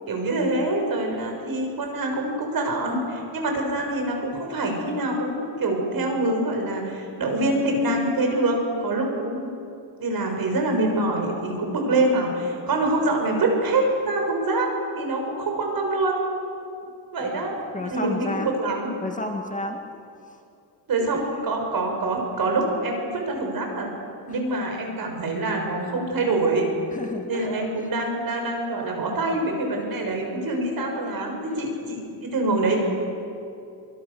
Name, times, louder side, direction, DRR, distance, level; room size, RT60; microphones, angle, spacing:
voice 1, 0.1-9.5 10.0-14.7 14.9-16.3 17.1-17.6 17.9-18.9 20.9-23.9 24.3-26.7 27.3-32.8, right 2 dB, 55° right, 2 dB, 6.5 m, -25 dB
voice 2, 17.2-18.5 19.0-19.8 20.3-20.4 21.0-21.1 24.3-24.4 26.9-27.7 30.5-30.6, left 1 dB, 20° left, 3 dB, 2.0 m, -32 dB
24.5 x 24.0 x 7.0 m, 2.6 s
cardioid pair, 115°, 43 cm